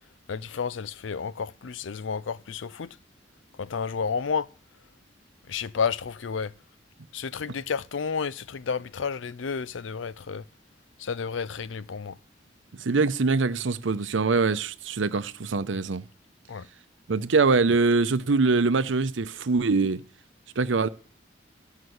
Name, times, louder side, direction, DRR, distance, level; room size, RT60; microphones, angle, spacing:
voice 1, 0.3-2.9 3.6-4.5 5.5-6.5 7.1-10.4 11.0-12.2 16.5-16.7, left 6 dB, 85° left, 0.5 m, -31 dB
voice 2, 12.8-16.0 17.1-20.0 20.6-20.9, right 4 dB, 80° right, 0.7 m, -23 dB
14.5 x 5.7 x 7.9 m
head